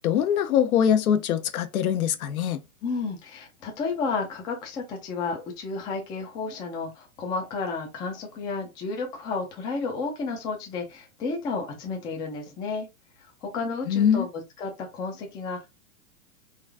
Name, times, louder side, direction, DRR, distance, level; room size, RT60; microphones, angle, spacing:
voice 1, 0.0-2.6 13.9-14.3, left 9 dB, 70° left, 0.8 m, -23 dB
voice 2, 2.8-12.9 13.2-14.3 14.6-15.7, left 4 dB, 10° left, 0.4 m, -32 dB
3.9 x 2.5 x 3.2 m
hypercardioid pair, 130°, 44 cm